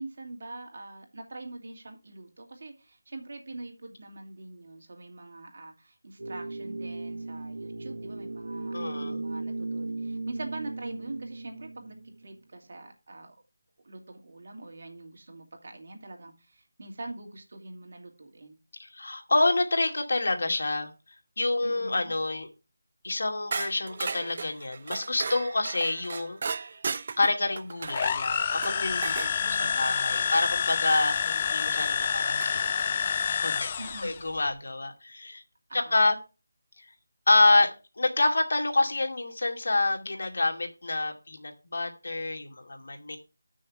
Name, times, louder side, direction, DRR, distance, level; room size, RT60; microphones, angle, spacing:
voice 1, 0.0-13.4 13.8-18.6 21.6-22.1 29.4-30.6 33.8-34.2 35.7-36.1, right 2 dB, 60° right, 2.7 m, -44 dB
sound 1, 6.2-12.3, right 2 dB, 80° right, 1.7 m, -36 dB
voice 2, 8.7-9.2 18.8-20.9 21.4-22.5 23.0-26.4 27.2-33.7 34.0-35.4 35.7-36.2 37.3-37.7 38.0-43.2, left 2 dB, 70° left, 2.3 m, -27 dB
sound 2, 23.5-29.4 31.3-31.4 32.4-32.9, right 5 dB, 45° right, 0.5 m, -36 dB
sound 3, 27.9-34.2, left 7 dB, 30° left, 0.4 m, -28 dB
6.4 x 6.0 x 7.4 m
figure-of-eight pair, 165°, 0 cm